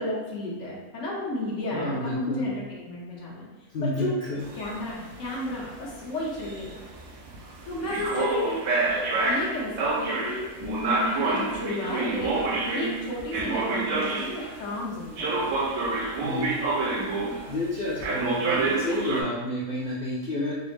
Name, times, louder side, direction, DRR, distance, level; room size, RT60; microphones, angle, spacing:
voice 1, 0.0-6.8 7.6-8.6 8.9-15.4, left 1 dB, 55° left, -4 dB, 1.1 m, -33 dB
voice 2, 1.7-2.5 3.7-4.4 16.2-16.5 17.5-20.6, left 1 dB, 85° left, -6 dB, 0.4 m, -30 dB
sound 1, 4.4-14.6 15.2-17.6 18.0-19.2, right 3 dB, 70° right, 1.0 m, -28 dB
4.0 x 2.0 x 3.2 m, 1.3 s
omnidirectional pair, 1.6 m